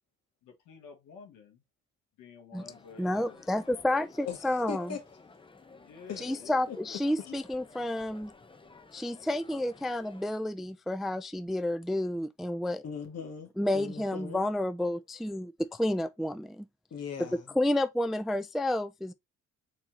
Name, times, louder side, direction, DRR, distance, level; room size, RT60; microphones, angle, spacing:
voice 1, 0.4-1.6 2.2-4.1 4.8-5.0 5.8-7.2 13.6-14.4, left 5 dB, 90° left, 1.6 m, -52 dB
sound 1, 2.7-10.2, left 3 dB, 15° left, 0.7 m, -54 dB
voice 2, 3.0-4.9 6.2-8.3 8.9-12.8 13.6-16.7 17.6-19.1, left 1 dB, ahead, 0.3 m, -30 dB
voice 3, 4.7-5.0 6.1-6.3 6.7-6.8 7.2-7.4 12.8-14.5 16.9-17.5, left 7 dB, 55° left, 1.9 m, -39 dB
4.5 x 4.3 x 2.8 m
cardioid pair, 90°, 30 cm